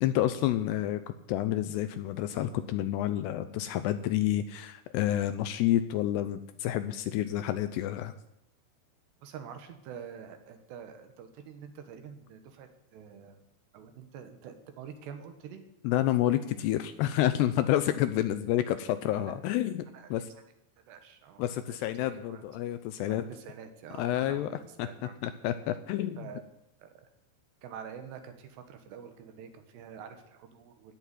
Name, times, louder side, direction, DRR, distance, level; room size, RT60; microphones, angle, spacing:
voice 1, 0.0-8.1 15.8-19.9 20.1-20.3 21.4-23.2 24.0-24.5 24.8-24.9 25.2-26.3, left 13 dB, 80° left, 11 dB, 2.6 m, -29 dB
voice 2, 9.2-13.4 13.7-15.6 19.2-19.3 19.9-20.1 20.9-22.4 23.0-25.2 26.2-26.4 26.8-27.1 27.6-31.0, right 7 dB, 70° right, 7 dB, 3.3 m, -47 dB
16.5 x 7.1 x 9.9 m, 0.82 s
omnidirectional pair, 5.3 m